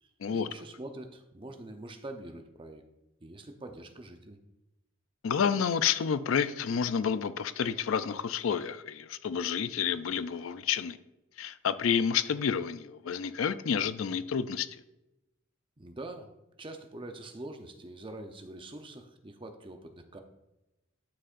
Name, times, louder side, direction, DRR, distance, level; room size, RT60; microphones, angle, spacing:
voice 1, 0.0-2.8 3.2-4.4 15.8-16.3 16.6-20.2, right 2 dB, 25° right, 6 dB, 0.7 m, -44 dB
voice 2, 5.2-11.0 11.4-14.7, left 7 dB, 75° left, 14 dB, 0.4 m, -29 dB
11.5 x 6.6 x 2.5 m, 0.95 s
head